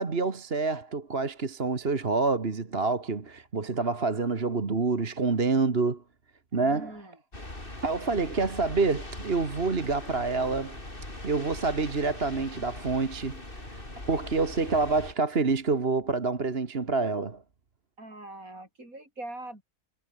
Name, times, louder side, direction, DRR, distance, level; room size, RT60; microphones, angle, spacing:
voice 1, 0.0-6.0 6.5-7.0 7.8-10.8 11.2-13.4 14.1-17.4, right 4 dB, 40° right, 1.9 m, -27 dB
voice 2, 6.5-7.2 18.0-19.6, right 2 dB, 60° right, 8.1 m, -42 dB
sound 1, 7.3-15.1, left 1 dB, 35° left, 5.4 m, -41 dB
omnidirectional pair, 1.6 m